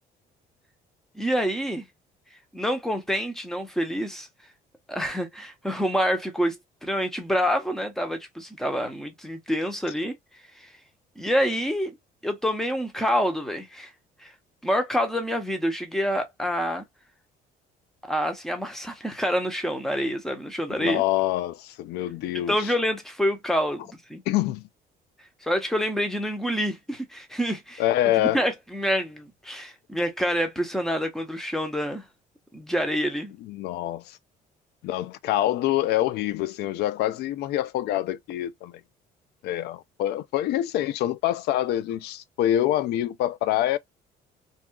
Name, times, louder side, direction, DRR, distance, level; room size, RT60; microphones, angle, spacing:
voice 1, 1.1-1.9 2.5-4.3 4.9-10.1 10.6-10.7 11.2-12.0 12.2-13.9 14.2-14.3 14.6-16.8 18.1-21.0 22.3-24.2 25.4-27.8 28.2-32.0 32.5-33.3, equal, ahead, 0.8 m, -27 dB
voice 2, 20.8-22.7 24.3-24.7 27.8-28.4 33.4-34.2 34.8-38.7 39.4-43.8, left 13 dB, 75° left, 0.4 m, -26 dB
2.7 x 2.4 x 2.2 m
cardioid pair, 110°, 17 cm